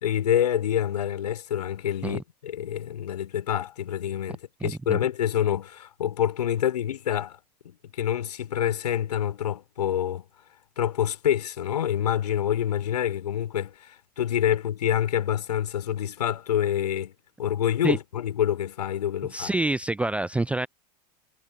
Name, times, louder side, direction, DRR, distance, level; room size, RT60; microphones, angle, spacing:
voice 1, 0.0-7.4 7.6-10.2 10.8-17.1 17.4-19.5, left 10 dB, 70° left, 3.2 m, -27 dB
voice 2, 4.6-5.0 17.8-18.0 19.3-20.7, right 2 dB, 5° right, 0.4 m, -27 dB
figure-of-eight pair, 85°, 21 cm